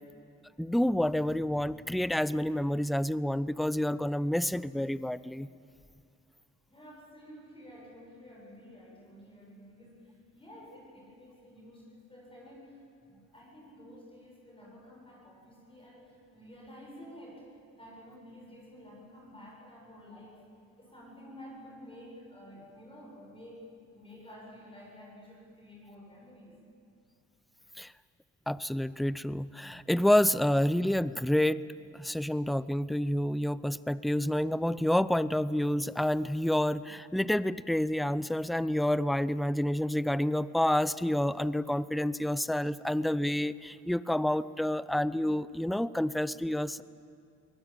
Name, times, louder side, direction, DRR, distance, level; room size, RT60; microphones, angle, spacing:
voice 1, 0.6-5.5 27.8-27.9 28.5-31.6 31.9-46.8, left 1 dB, ahead, 17 dB, 0.5 m, -28 dB
voice 2, 6.7-20.4 20.8-26.6, equal, 20° left, -2 dB, 7.5 m, -51 dB
23.0 x 19.5 x 9.1 m, 2.4 s
cardioid pair, 90°, 30 cm